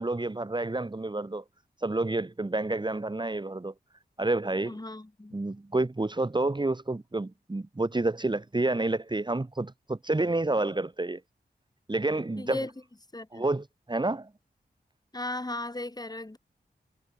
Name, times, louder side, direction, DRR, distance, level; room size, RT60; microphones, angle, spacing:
voice 1, 0.0-1.4 1.8-3.7 4.2-4.8 5.3-11.2 11.9-12.7 13.3-14.3, right 2 dB, 25° right, 1.7 m, -29 dB
voice 2, 4.6-5.4 12.4-12.7 13.1-13.4 15.1-16.4, left 2 dB, 20° left, 3.4 m, -36 dB
cardioid pair, 60°, 18 cm